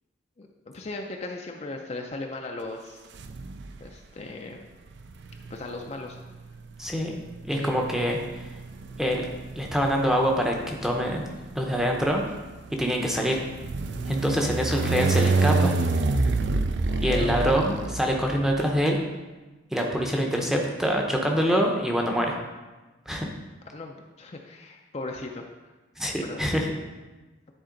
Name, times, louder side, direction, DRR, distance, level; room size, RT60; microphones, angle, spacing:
voice 1, 0.4-3.0 3.8-4.6 5.5-6.2 7.5-7.7 14.8-14.9 16.9-17.5 23.7-25.4 26.2-26.4, left 2 dB, 35° left, 2 dB, 0.4 m, -37 dB
sound 1, 3.2-3.9 4.9-18.6, right 3 dB, 60° right, 0.4 m, -28 dB
voice 2, 6.8-7.1 7.4-8.5 9.0-9.2 9.6-11.2 11.5-12.2 12.7-13.4 14.1-15.8 17.0-19.0 19.7-22.4 23.1-23.3 26.0-26.7, equal, ahead, 0 dB, 0.7 m, -25 dB
10.0 x 4.2 x 3.8 m, 1.2 s
head